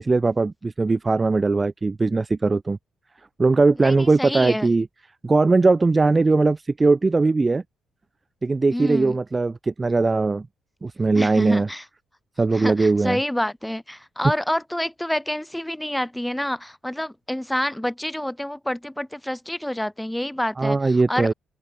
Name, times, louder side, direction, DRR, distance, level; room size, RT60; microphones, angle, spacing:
voice 1, 0.0-2.8 3.4-4.9 5.2-7.6 8.4-10.5 10.8-11.7 12.4-13.2 20.6-21.3, right 3 dB, 25° right, 0.5 m, -20 dB
voice 2, 3.8-4.7 8.7-9.2 11.1-11.8 12.5-21.3, left 1 dB, 5° left, 1.5 m, -28 dB
open air
cardioid pair, 90°, 0 cm